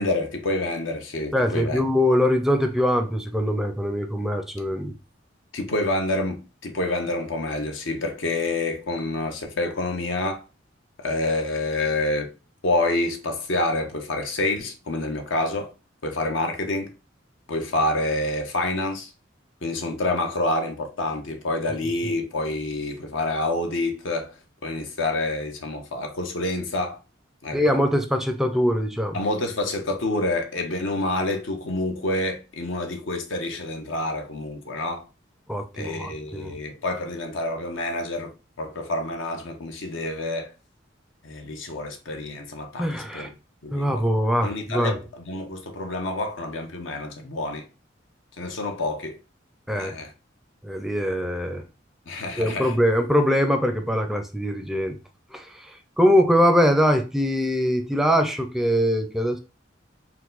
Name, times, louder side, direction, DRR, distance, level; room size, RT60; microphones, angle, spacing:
voice 1, 0.0-1.8 5.5-10.4 11.0-12.3 12.6-15.7 16.0-16.9 17.5-19.1 19.6-24.3 24.6-27.0 27.4-27.6 29.1-35.0 35.7-40.5 41.2-43.3 43.6-44.1 44.4-47.6 48.4-49.2 49.7-50.1 52.1-52.8, left 2 dB, 85° left, 0.9 m, -28 dB
voice 2, 1.3-4.9 22.0-22.1 27.5-29.2 35.5-36.5 42.8-43.3 43.7-45.0 49.7-49.9 50.6-51.6 52.3-55.0 55.3-59.4, equal, ahead, 0.4 m, -22 dB
4.6 x 2.2 x 3.8 m
head